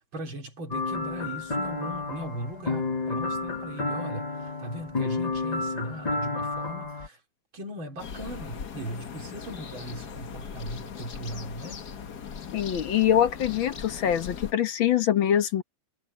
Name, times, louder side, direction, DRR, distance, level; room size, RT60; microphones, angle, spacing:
voice 1, 0.1-7.2 7.5-11.9, right 1 dB, 80° right, 4.2 m, -38 dB
sound 1, 0.7-7.1, left 3 dB, 25° left, 1.0 m, -31 dB
sound 2, 8.0-14.5, left 6 dB, 55° left, 1.9 m, -39 dB
voice 2, 12.5-15.6, left 10 dB, 80° left, 2.0 m, -24 dB
omnidirectional pair, 2.1 m